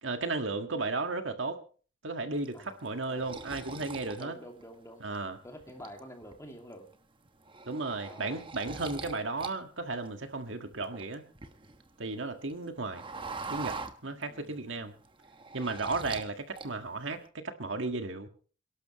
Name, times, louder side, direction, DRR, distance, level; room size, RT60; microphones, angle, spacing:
voice 1, 0.0-1.6 2.0-4.4 5.0-5.4 7.7-11.2 12.0-13.0 13.5-14.9 15.5-18.3, right 3 dB, 65° right, 6 dB, 1.7 m, -34 dB
sound 1, 2.4-5.2 5.6-6.3 6.7-6.9 7.3-9.5 9.8-11.9 12.2-14.5 14.9-16.3 16.6-17.2, right 4 dB, 25° right, 1.1 m, -42 dB
voice 2, 2.5-3.3 4.2-5.0 5.4-6.9 8.1-8.5 14.3-14.7, equal, 15° left, 3 dB, 2.4 m, -48 dB
28.0 x 12.0 x 3.1 m, 0.39 s
head